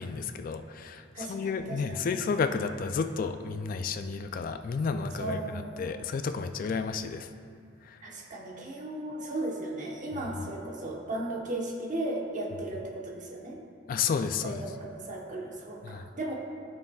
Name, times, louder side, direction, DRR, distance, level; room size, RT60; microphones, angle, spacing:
voice 1, 0.0-7.3 7.8-8.0 13.9-14.6 15.8-16.1, left 5 dB, 45° left, 9 dB, 0.3 m, -32 dB
voice 2, 1.1-2.0 5.1-5.8 8.0-13.6 14.4-16.3, right 1 dB, 40° right, -2 dB, 1.1 m, -36 dB
13.0 x 5.5 x 2.3 m, 2.2 s
head